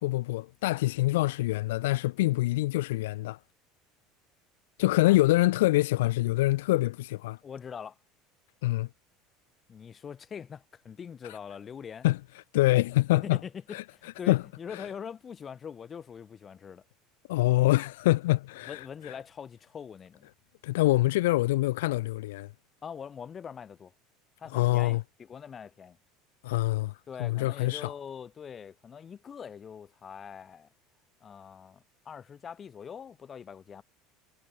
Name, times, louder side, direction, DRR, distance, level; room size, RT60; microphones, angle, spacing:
voice 1, 0.0-3.4 4.8-7.4 8.6-8.9 12.0-12.2 12.5-13.4 13.7-13.8 14.3-14.4 14.7-14.9 17.3-19.1 20.6-22.5 24.5-25.0 26.4-27.9, left 18 dB, 85° left, 0.6 m, -25 dB
voice 2, 4.8-5.2 7.4-8.0 9.7-12.1 13.2-16.8 18.7-20.3 22.8-23.9 24.4-26.0 27.1-30.7 31.2-33.8, left 7 dB, 35° left, 5.1 m, -43 dB
supercardioid pair, 95°, 0 cm